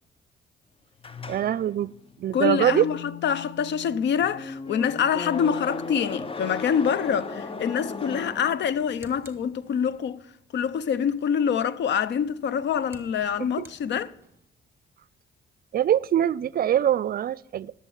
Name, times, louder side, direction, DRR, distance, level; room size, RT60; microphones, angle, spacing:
sound 1, 1.0-9.1, left 4 dB, 25° left, 0.7 m, -37 dB
voice 1, 1.3-1.9 2.2-2.9 15.7-17.7, right 11 dB, 50° right, 0.4 m, -23 dB
voice 2, 2.3-10.2 10.5-14.1, left 7 dB, 65° left, 0.6 m, -25 dB
sound 2, 8.5-10.2 12.2-14.5, right 3 dB, 10° right, 1.5 m, -53 dB
11.0 x 7.2 x 7.1 m
cardioid pair, 90°, 20 cm